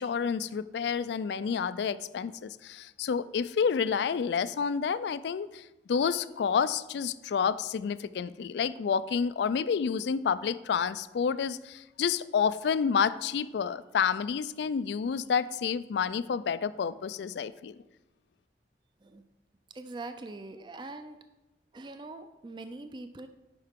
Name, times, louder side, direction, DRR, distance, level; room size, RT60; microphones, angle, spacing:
voice 1, 0.0-17.7, left 6 dB, 70° left, 16 dB, 0.3 m, -29 dB
voice 2, 19.7-21.2 21.7-23.3, right 2 dB, 25° right, 9 dB, 0.4 m, -42 dB
10.0 x 5.7 x 3.6 m, 1.0 s
head